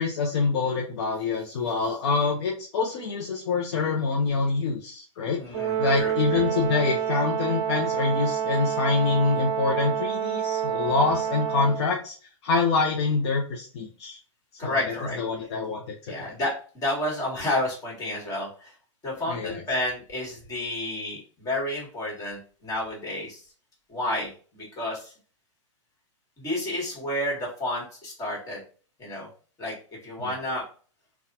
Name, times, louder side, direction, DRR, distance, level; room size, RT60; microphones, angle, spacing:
voice 1, 0.0-5.4 5.8-12.2 12.4-14.2 14.6-16.3 19.3-19.6 30.2-30.3, left 4 dB, 55° left, 0 dB, 0.7 m, -26 dB
voice 2, 5.4-6.4 14.6-15.2 16.1-18.7 19.0-23.4 23.9-25.1 26.4-28.6 29.0-29.3 29.6-29.7 30.0-30.6, left 1 dB, 20° left, -3 dB, 1.6 m, -30 dB
Brass instrument, 5.5-11.9, right 9 dB, 25° right, 0.8 m, -28 dB
4.0 x 2.3 x 2.7 m, 0.41 s
hypercardioid pair, 130°, 16 cm